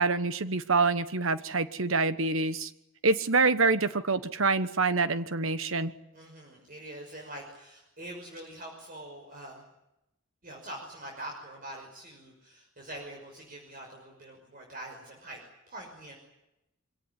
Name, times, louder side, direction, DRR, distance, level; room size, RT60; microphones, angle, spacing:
voice 1, 0.0-2.7 3.0-5.9, right 3 dB, 75° right, 12 dB, 1.2 m, -26 dB
voice 2, 6.1-9.6 10.4-16.1, right 1 dB, 45° right, 0 dB, 6.0 m, -44 dB
25.0 x 18.0 x 9.9 m, 0.87 s
head